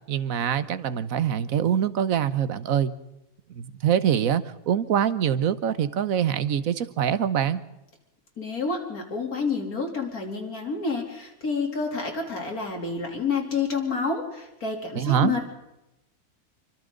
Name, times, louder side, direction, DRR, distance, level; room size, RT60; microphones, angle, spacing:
voice 1, 0.1-2.9 3.5-7.6 14.9-15.3, right 9 dB, 70° right, 13 dB, 1.3 m, -24 dB
voice 2, 8.4-15.5, left 4 dB, 80° left, 1 dB, 3.9 m, -29 dB
28.0 x 24.5 x 3.9 m, 0.92 s
omnidirectional pair, 1.5 m